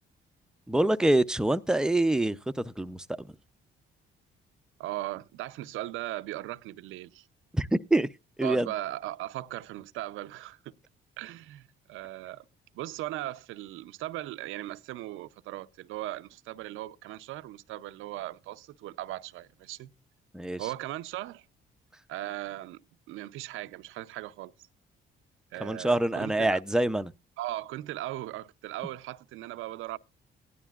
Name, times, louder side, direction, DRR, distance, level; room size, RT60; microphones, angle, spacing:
voice 1, 0.7-3.3 7.5-8.1 8.4-8.7 20.3-20.7 25.6-27.1, right 1 dB, 5° right, 0.5 m, -26 dB
voice 2, 4.8-7.3 8.4-10.7 11.2-12.4 12.7-19.9 20.6-21.5 22.1-24.5 25.5-26.6 27.4-30.0, right 15 dB, 90° right, 0.6 m, -38 dB
17.0 x 11.0 x 2.4 m
cardioid pair, 90°, 20 cm